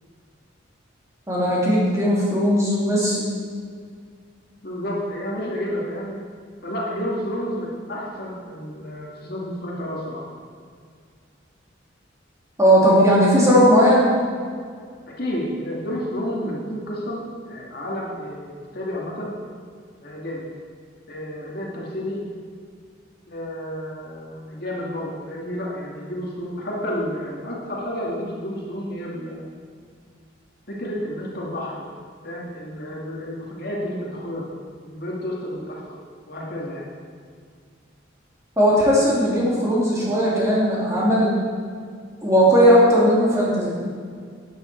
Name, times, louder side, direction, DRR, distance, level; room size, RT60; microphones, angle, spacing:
voice 1, 1.3-3.3 12.6-14.1 38.6-41.4 42.2-43.7, equal, 15° right, -6 dB, 3.0 m, -17 dB
voice 2, 4.6-6.2 6.6-10.2 15.2-19.3 20.0-20.4 21.1-22.2 23.3-29.4 30.7-31.9 32.2-34.5 34.8-36.0 36.3-36.9, equal, 55° left, -3 dB, 2.1 m, -30 dB
11.5 x 9.5 x 4.5 m, 2.1 s
head